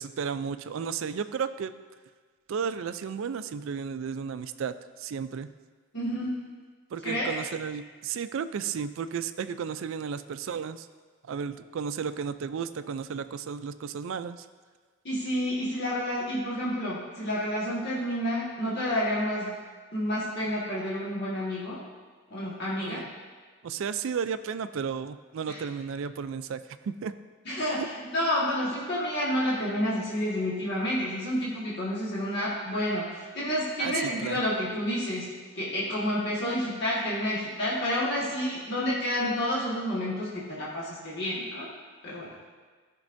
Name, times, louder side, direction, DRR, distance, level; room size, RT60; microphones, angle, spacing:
voice 1, 0.0-1.7 2.5-5.5 6.9-10.9 11.2-14.5 22.8-23.1 23.6-27.1 27.8-27.9 33.8-34.4, right 6 dB, 60° right, 12 dB, 0.3 m, -33 dB
voice 2, 5.9-6.4 7.0-7.3 15.0-19.5 19.9-21.8 22.3-23.1 25.5-25.6 27.4-35.3 35.5-41.7 42.0-42.3, equal, 50° left, -8 dB, 1.5 m, -29 dB
14.0 x 5.3 x 2.6 m, 1.5 s
head